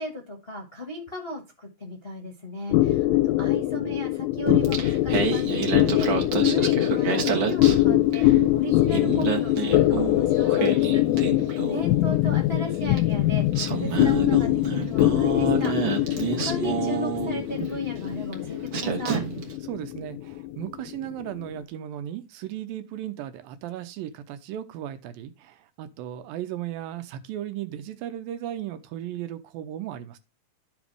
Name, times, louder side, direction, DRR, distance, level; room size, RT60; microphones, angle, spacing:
voice 1, 0.0-8.3 8.5-11.0 11.3-16.2 16.4-19.2, left 1 dB, 40° left, 0.9 m, -36 dB
sound 1, 2.7-21.5, left 15 dB, 80° left, 2.1 m, -23 dB
Singing, 4.5-8.4 8.7-12.0 13.0-13.1 13.5-17.7 18.3-18.4 18.7-19.5, right 7 dB, 60° right, 1.3 m, -29 dB
voice 2, 19.7-30.2, right 11 dB, 80° right, 2.5 m, -36 dB
13.0 x 5.1 x 3.4 m
omnidirectional pair, 4.2 m